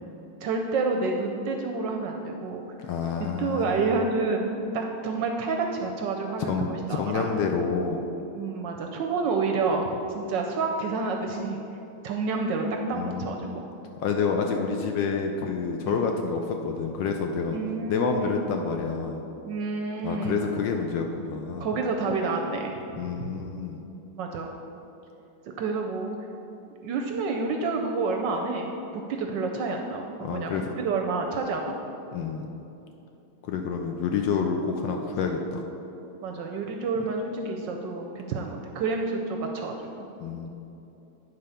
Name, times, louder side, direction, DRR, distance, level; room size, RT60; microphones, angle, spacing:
voice 1, 0.4-2.6 3.4-7.3 8.3-9.9 10.1-11.6 12.0-13.6 15.8-16.0 17.5-18.4 19.4-20.4 21.6-23.4 24.2-24.5 25.6-26.1 26.8-28.7 28.9-31.9 36.2-40.1, right 4 dB, 70° right, 2 dB, 1.1 m, -29 dB
voice 2, 2.8-4.0 6.4-8.0 12.9-13.6 14.0-17.6 17.9-19.2 20.0-21.7 23.0-23.8 30.2-30.7 32.1-32.5 33.4-35.6 40.2-40.5, left 5 dB, 70° left, 3 dB, 1.2 m, -28 dB
9.5 x 4.1 x 5.6 m, 2.9 s
omnidirectional pair, 2.3 m